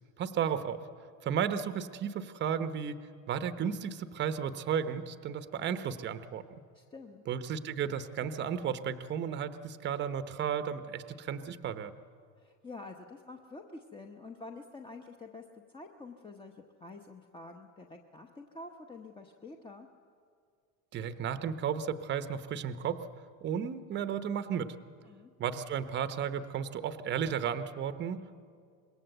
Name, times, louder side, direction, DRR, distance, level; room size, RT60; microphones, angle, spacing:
voice 1, 0.2-0.8 1.2-3.0 3.3-6.4 7.3-11.9 20.9-23.1 23.4-24.8 25.4-28.4, right 8 dB, 25° right, 11 dB, 0.9 m, -34 dB
voice 2, 6.7-7.2 12.4-19.9 25.1-25.3, left 3 dB, 10° left, 3 dB, 0.9 m, -48 dB
26.0 x 21.0 x 8.0 m, 2.2 s
supercardioid pair, 145°, 43 cm